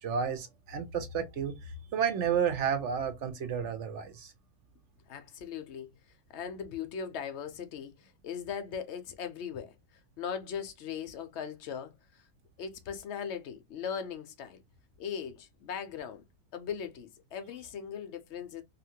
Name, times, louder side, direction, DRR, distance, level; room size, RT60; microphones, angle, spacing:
voice 1, 0.0-4.3, right 7 dB, 60° right, 0.8 m, -31 dB
voice 2, 5.1-5.9 6.3-9.7 10.2-12.2 12.6-14.6 15.0-16.2 16.5-18.6, left 7 dB, 70° left, 0.6 m, -39 dB
2.7 x 2.4 x 2.7 m
omnidirectional pair, 1.7 m